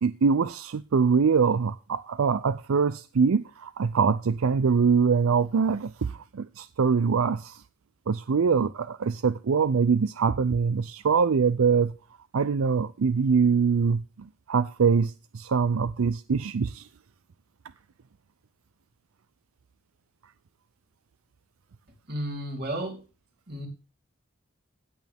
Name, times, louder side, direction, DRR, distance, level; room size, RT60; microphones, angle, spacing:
voice 1, 0.0-7.6 8.1-11.9 12.3-16.9, right 5 dB, 85° right, 0.5 m, -24 dB
voice 2, 22.1-23.0 23.5-23.7, right 1 dB, 50° right, 3.9 m, -32 dB
16.0 x 8.3 x 3.6 m
head